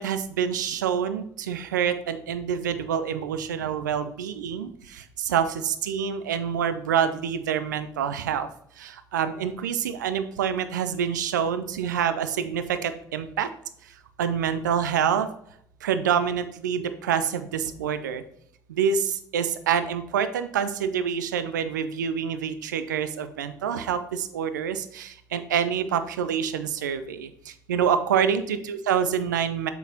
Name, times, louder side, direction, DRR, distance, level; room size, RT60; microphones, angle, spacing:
voice 1, 0.0-8.5 8.8-13.5 14.2-15.3 15.8-18.2 18.7-29.7, right 8 dB, 75° right, 11 dB, 0.5 m, -27 dB
7.2 x 5.8 x 2.8 m, 0.68 s
figure-of-eight pair, 50°, 10 cm